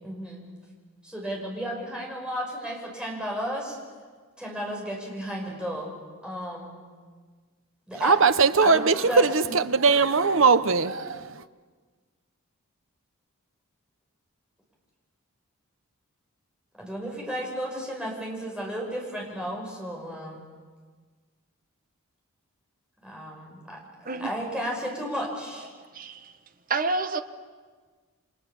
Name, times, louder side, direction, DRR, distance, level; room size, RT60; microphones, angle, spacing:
voice 1, 0.0-0.4 1.0-3.8 4.4-5.9 6.2-6.8 7.9-8.2 8.6-9.5 16.8-20.5 23.0-25.7, equal, 5° right, 5.9 m, -33 dB
voice 2, 8.0-11.4, right 4 dB, 60° right, 0.9 m, -20 dB
voice 3, 25.9-26.3 26.7-27.2, right 3 dB, 40° right, 1.1 m, -28 dB
29.0 x 25.5 x 7.1 m
head